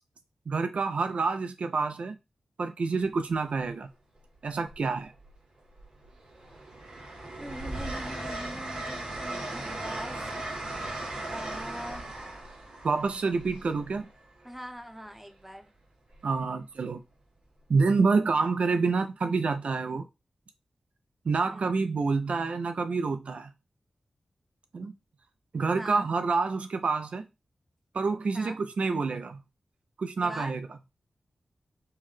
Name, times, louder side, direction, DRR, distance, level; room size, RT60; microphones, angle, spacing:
voice 1, 0.5-2.2 2.6-3.9 4.4-5.1 12.8-14.1 16.2-17.0 17.7-20.0 21.3-23.5 24.7-24.9 25.5-27.2 27.9-29.4 30.0-30.6, right 4 dB, 70° right, 0.4 m, -27 dB
Train, 3.3-3.4 4.6-5.4 5.8-14.5 16.1-16.4, right 2 dB, 85° right, 2.5 m, -38 dB
voice 2, 7.4-10.2 11.3-12.0 14.4-15.6 18.3-18.4 21.4-21.7 25.8-26.1 28.3-28.6 30.2-30.6, equal, 10° right, 0.7 m, -42 dB
5.5 x 2.1 x 3.2 m
wide cardioid pair, 70°, 2 cm